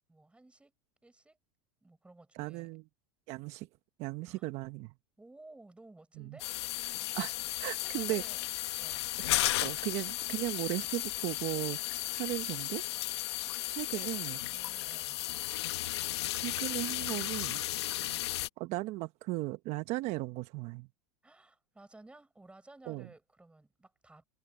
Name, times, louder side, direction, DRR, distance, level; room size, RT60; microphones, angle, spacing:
voice 1, 0.1-0.7 1.0-1.4 1.8-2.8 4.2-4.5 5.2-6.6 7.0-7.3 7.8-8.4 8.8-9.1 13.4-14.1 14.5-15.3 18.0-18.5 21.2-24.2, right 2 dB, 10° right, 6.0 m, -56 dB
voice 2, 2.3-2.8 3.3-3.7 4.0-4.9 6.2-6.4 7.1-7.3 7.6-8.2 9.2-9.3 9.6-12.8 13.7-14.4 16.3-17.6 18.6-20.9 22.9-23.1, right 20 dB, 55° right, 1.0 m, -36 dB
sound 1, 6.4-18.5, left 16 dB, 85° left, 1.3 m, -35 dB
supercardioid pair, 110°, 14 cm